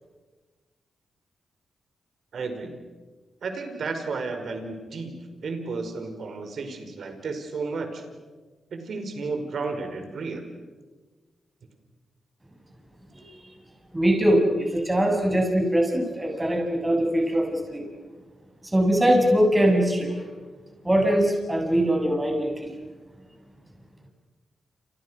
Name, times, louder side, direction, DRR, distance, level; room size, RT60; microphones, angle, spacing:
voice 1, 2.3-2.7 3.4-8.0 8.7-10.4, right 4 dB, 70° right, 6 dB, 5.1 m, -32 dB
voice 2, 13.9-17.9 18.7-20.1 20.8-22.7, equal, 20° right, 1 dB, 7.7 m, -22 dB
29.5 x 28.5 x 6.5 m, 1.3 s
supercardioid pair, 50°, 0 cm